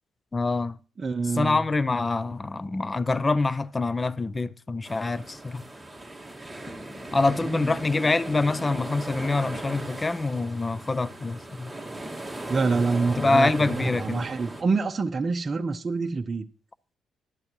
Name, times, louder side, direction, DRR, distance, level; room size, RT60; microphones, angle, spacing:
voice 1, 0.3-0.8 1.4-5.6 7.1-11.7 13.2-14.3, left 3 dB, 25° left, 0.4 m, -25 dB
voice 2, 1.0-1.6 7.4-7.8 12.5-16.5, right 4 dB, 30° right, 0.7 m, -27 dB
sound 1, 4.8-14.6, right 1 dB, 5° right, 1.8 m, -37 dB
12.0 x 10.5 x 3.0 m
cardioid pair, 90°, 0 cm